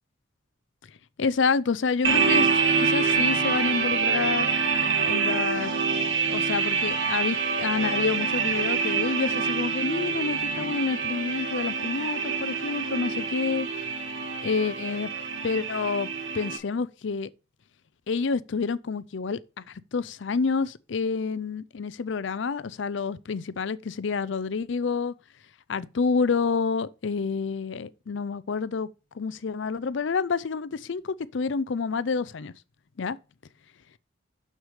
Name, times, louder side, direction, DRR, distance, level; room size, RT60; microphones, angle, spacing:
voice 1, 1.2-2.5 2.8-4.5 5.0-5.7 6.3-13.7 14.4-15.1 15.4-16.1 16.3-17.3 18.1-19.4 19.9-25.1 25.7-28.9 29.2-32.5 33.0-33.2, left 5 dB, 60° left, 0.5 m, -28 dB
sound 1, 2.0-16.6, right 5 dB, 65° right, 1.3 m, -26 dB
6.7 x 6.4 x 4.8 m
head